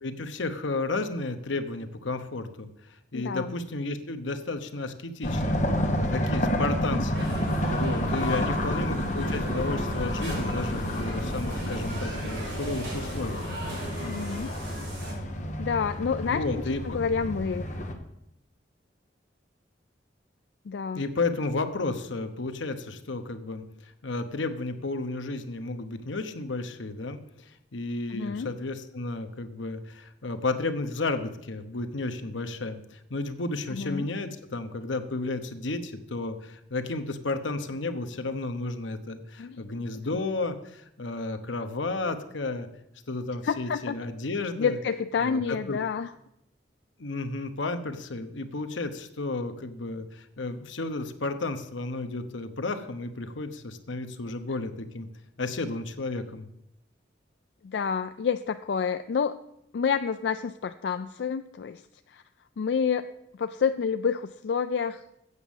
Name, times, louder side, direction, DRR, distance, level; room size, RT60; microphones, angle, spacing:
voice 1, 0.0-13.4 16.2-17.0 20.9-42.7 43.1-44.8 45.2-45.8 47.0-55.1 55.4-56.5, left 2 dB, 90° left, 8 dB, 1.0 m, -32 dB
voice 2, 3.1-3.5 6.8-7.0 14.0-14.5 15.6-16.4 16.8-17.7 20.7-21.0 28.1-28.5 33.7-34.1 39.4-39.6 40.1-40.2 43.4-43.9 44.6-46.1 57.6-59.4 59.7-61.8 62.1-62.2 62.6-63.0 63.4-65.0, left 6 dB, 65° left, 10 dB, 0.3 m, -28 dB
sound 1, 5.2-17.9, equal, 40° left, 1.1 m, -30 dB
sound 2, 7.1-15.1, right 1 dB, 85° right, 5.0 m, -38 dB
8.2 x 7.3 x 7.1 m, 0.81 s
head